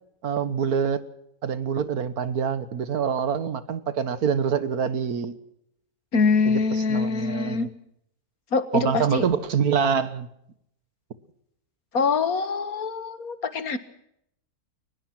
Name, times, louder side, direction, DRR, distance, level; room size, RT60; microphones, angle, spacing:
voice 1, 0.2-1.0 1.4-5.4 6.5-6.6 6.9-7.7 8.7-10.3, right 7 dB, 90° right, 14 dB, 1.8 m, -25 dB
voice 2, 6.1-7.7 8.5-9.3 11.9-13.8, left 4 dB, 75° left, 12 dB, 2.0 m, -24 dB
22.0 x 20.5 x 6.0 m, 0.75 s
omnidirectional pair, 1.5 m